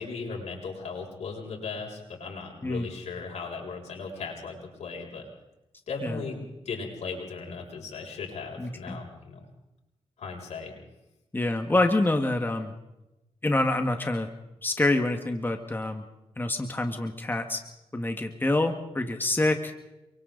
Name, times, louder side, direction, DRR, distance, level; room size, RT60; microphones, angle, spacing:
voice 1, 0.0-5.2 5.9-9.5 10.2-10.7, left 4 dB, 85° left, -1 dB, 7.2 m, -37 dB
voice 2, 8.6-9.0 11.3-12.7 13.4-14.3 14.6-16.1 16.4-17.6 17.9-19.7, left 2 dB, 20° left, 5 dB, 1.9 m, -26 dB
29.0 x 24.0 x 4.1 m, 0.94 s
cardioid pair, 85°, 11 cm